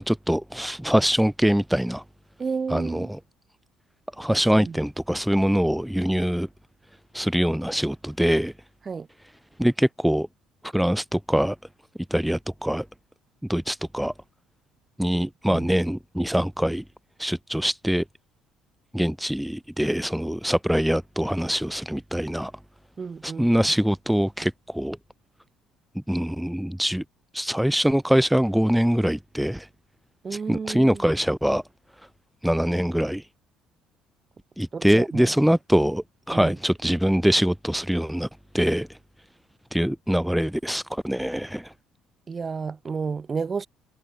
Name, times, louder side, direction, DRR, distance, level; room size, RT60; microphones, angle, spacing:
voice 1, 0.0-2.0 2.7-3.2 4.2-6.5 7.1-8.5 9.6-10.3 10.7-11.6 12.1-12.8 13.5-14.1 15.0-16.8 17.2-18.0 18.9-22.5 23.2-25.0 26.1-27.0 27.3-29.7 30.3-31.6 32.4-33.2 34.6-38.3 38.5-39.0 39.7-41.7, equal, 5° right, 0.4 m, -23 dB
voice 2, 2.4-3.1 4.3-4.8 8.9-9.1 15.2-15.3 15.5-15.7 23.0-23.5 30.2-31.0 34.7-35.3 36.3-36.5 42.3-43.7, right 5 dB, 35° right, 3.1 m, -31 dB
hypercardioid pair, 65°, 0 cm